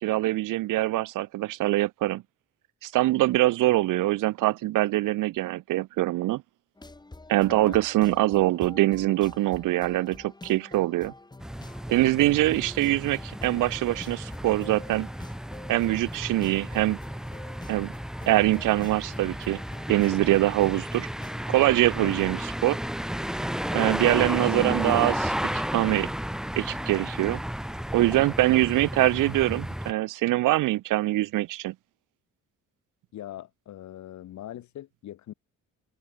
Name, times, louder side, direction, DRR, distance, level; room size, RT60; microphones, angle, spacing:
voice 1, 0.0-2.2 2.8-6.4 7.3-11.1 11.9-15.1 15.7-17.0 17.7-17.9 18.3-19.6 19.9-21.1 21.5-22.8 23.7-26.1 26.6-27.4 27.9-31.7, right 17 dB, 85° right, 0.8 m, -24 dB
sound 1, 6.8-21.4, left 2 dB, 15° left, 6.6 m, -47 dB
voice 2, 7.5-7.8 22.0-22.3 33.1-35.3, left 12 dB, 65° left, 1.5 m, -41 dB
sound 2, 11.4-29.9, equal, ahead, 1.2 m, -33 dB
open air
cardioid pair, 135°, 31 cm